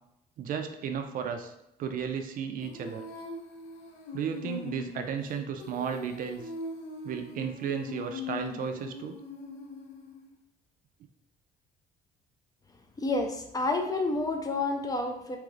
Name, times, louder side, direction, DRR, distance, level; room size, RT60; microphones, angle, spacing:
voice 1, 0.4-1.5 1.8-3.0 4.1-6.4 7.0-9.2, right 7 dB, 55° right, 6 dB, 0.4 m, -34 dB
Female singing, 2.6-10.3, left 3 dB, 80° left, 0.6 m, -41 dB
voice 2, 13.0-15.4, left 2 dB, 20° left, 4 dB, 0.4 m, -29 dB
2.9 x 2.4 x 3.1 m, 0.83 s
cardioid pair, 110°, 17 cm